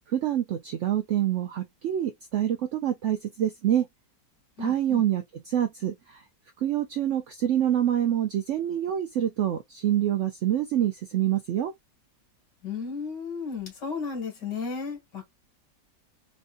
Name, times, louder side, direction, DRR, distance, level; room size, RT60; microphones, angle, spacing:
voice 1, 0.1-3.8 4.6-6.2 6.6-11.7, right 11 dB, 80° right, 0.6 m, -26 dB
voice 2, 4.6-5.0 12.6-15.3, left 5 dB, 90° left, 2.6 m, -34 dB
4.2 x 2.6 x 2.4 m
omnidirectional pair, 1.8 m